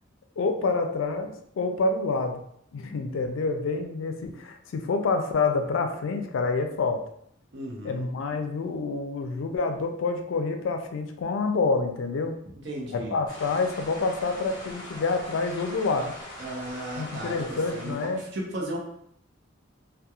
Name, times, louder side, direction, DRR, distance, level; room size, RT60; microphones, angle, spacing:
voice 1, 0.4-2.4 2.7-7.0 7.8-12.4 12.9-16.1 17.0-18.2, left 3 dB, 80° left, 6 dB, 0.4 m, -27 dB
voice 2, 7.5-8.1 12.6-13.2 16.4-18.8, right 1 dB, 65° right, -2 dB, 0.7 m, -35 dB
sound 1, 13.3-18.2, left 1 dB, 20° left, 0.7 m, -41 dB
2.3 x 2.2 x 2.8 m, 0.70 s
head